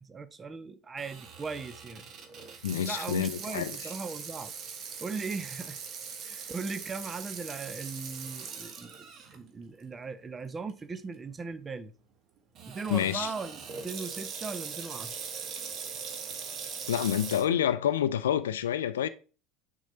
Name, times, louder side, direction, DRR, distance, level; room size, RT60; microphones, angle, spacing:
voice 1, 0.0-2.1 2.8-4.5 5.0-5.8 6.2-11.9 12.7-15.2, right 4 dB, 25° right, 0.7 m, -38 dB
Water tap faucet / Sink (filling or washing), 1.0-9.4 9.8-9.9 10.7-11.0 12.5-17.4, right 6 dB, 45° right, 1.2 m, -41 dB
voice 2, 2.6-3.7 12.9-13.3 16.9-19.1, left 10 dB, 75° left, 0.4 m, -28 dB
6.3 x 3.9 x 4.3 m
figure-of-eight pair, 70°, 0 cm